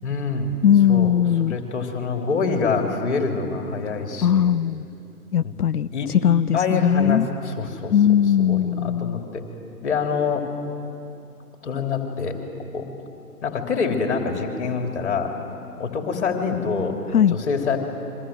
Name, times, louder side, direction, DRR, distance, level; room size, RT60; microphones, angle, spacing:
voice 1, 0.0-0.5 0.9-1.1 1.5-4.5 5.4-5.5 5.9-6.1 6.5-7.9 8.4-9.4 9.8-10.5 11.6-12.4 12.7-12.9 13.4-15.3 15.8-17.0 17.3-17.8, left 5 dB, 50° left, 3 dB, 3.3 m, -25 dB
voice 2, 0.6-1.6 4.2-4.9 5.3-7.3 7.9-9.3 17.1-17.4, left 9 dB, 75° left, 17 dB, 0.5 m, -19 dB
29.0 x 24.5 x 7.7 m, 2.7 s
figure-of-eight pair, 130°, 45 cm